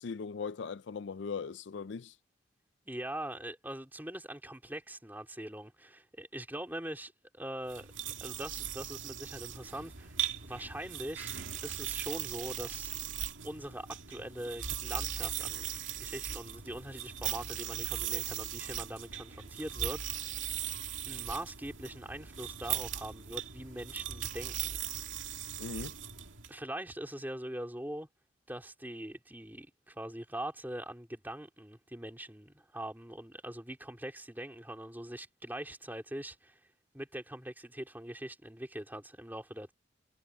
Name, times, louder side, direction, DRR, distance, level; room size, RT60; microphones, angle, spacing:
voice 1, 0.0-2.2 25.6-26.0, left 5 dB, 65° left, 0.4 m, -39 dB
voice 2, 2.8-7.9 8.2-10.1 10.4-12.9 13.4-15.7 16.0-20.2 21.0-24.8 26.5-28.1 28.5-36.6 36.9-39.7, right 1 dB, 10° right, 3.2 m, -42 dB
sound 1, 7.7-26.5, right 10 dB, 80° right, 2.2 m, -39 dB
head